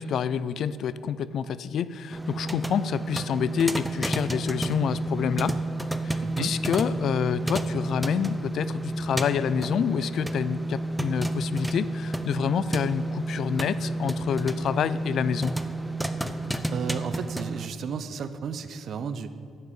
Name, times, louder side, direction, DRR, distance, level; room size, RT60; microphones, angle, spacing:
voice 1, 0.0-5.6 6.0-15.5, left 8 dB, 65° left, 16 dB, 0.4 m, -28 dB
Popcorn Real, 2.1-17.7, right 1 dB, 5° right, 0.7 m, -30 dB
voice 2, 6.2-6.5 16.7-19.3, right 6 dB, 65° right, 12 dB, 0.7 m, -33 dB
11.5 x 6.7 x 9.0 m, 2.3 s
cardioid pair, 90°, 0 cm